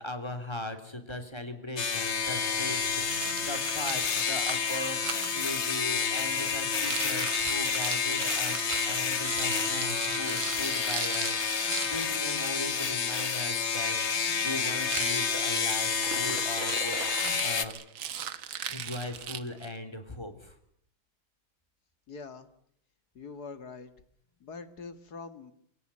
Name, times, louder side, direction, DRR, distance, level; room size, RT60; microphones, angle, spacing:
voice 1, 0.0-17.7 18.7-20.6, left 1 dB, 15° left, 7 dB, 3.2 m, -39 dB
sound 1, 1.8-17.7, left 6 dB, 40° left, 1.4 m, -29 dB
Rattle, 2.7-5.3 6.7-12.1 14.8-19.8, right 9 dB, 80° right, 2.0 m, -39 dB
voice 2, 22.1-22.5 23.1-23.9 24.4-25.5, left 4 dB, 55° left, 11 dB, 2.3 m, -43 dB
25.5 x 18.0 x 9.9 m, 0.71 s
omnidirectional pair, 2.1 m